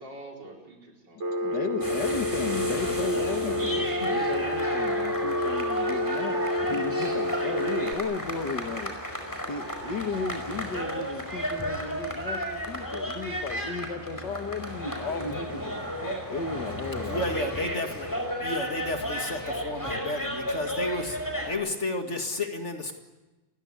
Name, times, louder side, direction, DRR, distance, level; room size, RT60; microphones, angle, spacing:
voice 1, 0.0-1.3 7.6-9.3, right 1 dB, 75° right, 0 dB, 5.3 m, -47 dB
Telephone, 1.2-7.9, left 1 dB, 40° right, 1.6 m, -29 dB
voice 2, 1.3-8.9 9.5-15.9 16.3-17.3, left 4 dB, 70° left, 6 dB, 2.4 m, -34 dB
sound 1, 1.8-21.5, equal, 10° left, 5.0 m, -33 dB
voice 3, 2.8-4.3 16.0-16.4 17.0-22.9, left 1 dB, 40° left, 4 dB, 2.5 m, -33 dB
29.5 x 16.5 x 9.8 m, 1.1 s
omnidirectional pair, 1.9 m